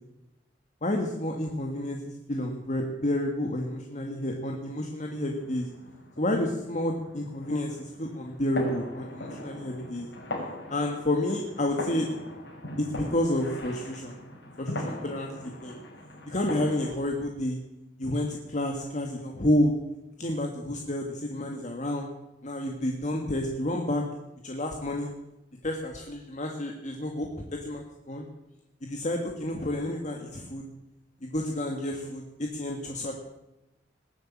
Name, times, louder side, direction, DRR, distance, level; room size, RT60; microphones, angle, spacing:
voice 1, 0.8-5.7 6.2-10.1 10.7-12.1 12.8-14.2 14.6-15.8 16.3-17.6 18.0-19.7 20.2-22.1 22.4-24.0 24.4-25.1 25.6-28.3 28.8-30.6 31.2-33.1, left 1 dB, 45° left, 2 dB, 1.7 m, -30 dB
sound 1, 5.0-17.0, left 1 dB, 70° left, 5.9 m, -40 dB
19.5 x 8.3 x 8.8 m, 0.95 s
head